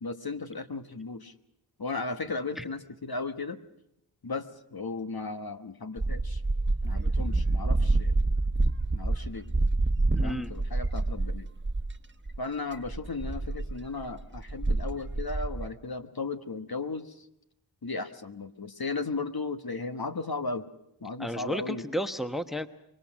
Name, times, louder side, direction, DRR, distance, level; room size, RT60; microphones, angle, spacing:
voice 1, 0.0-1.3 1.8-3.6 4.2-6.4 6.8-8.2 8.9-9.4 10.2-11.5 12.4-17.3 17.8-20.7 21.0-21.8, left 3 dB, 50° left, 8 dB, 1.3 m, -35 dB
sound 1, 6.0-11.9 12.3-12.4 12.7-15.7, right 2 dB, 25° right, 1.3 m, -27 dB
voice 2, 10.1-10.5 21.2-22.7, equal, ahead, 9 dB, 1.2 m, -32 dB
25.0 x 22.5 x 6.3 m, 0.84 s
cardioid pair, 40°, 47 cm